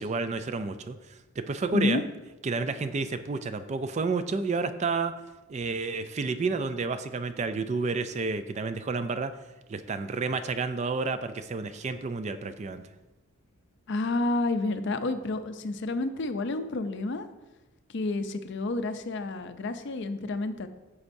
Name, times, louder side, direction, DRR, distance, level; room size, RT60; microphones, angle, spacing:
voice 1, 0.0-2.0 2.4-5.1 5.5-9.3 9.7-12.8, right 4 dB, 30° right, 11 dB, 0.3 m, -30 dB
voice 2, 1.7-2.0 13.9-17.3 17.9-20.7, left 2 dB, 55° left, 9 dB, 0.5 m, -30 dB
9.6 x 7.0 x 2.6 m, 1.1 s
head